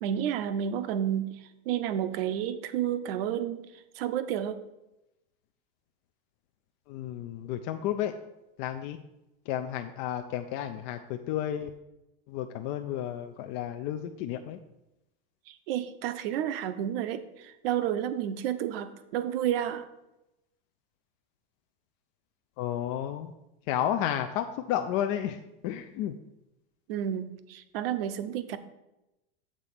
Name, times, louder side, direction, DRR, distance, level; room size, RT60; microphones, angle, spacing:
voice 1, 0.0-3.6 3.9-4.6 15.5-19.9 26.9-28.6, right 10 dB, 65° right, 12 dB, 0.7 m, -31 dB
voice 2, 6.9-8.1 8.6-9.0 9.5-11.7 12.3-14.6 22.6-23.3 23.7-26.2, left 11 dB, 40° left, 6 dB, 0.4 m, -32 dB
7.4 x 4.1 x 6.6 m, 0.94 s
supercardioid pair, 160°, 31 cm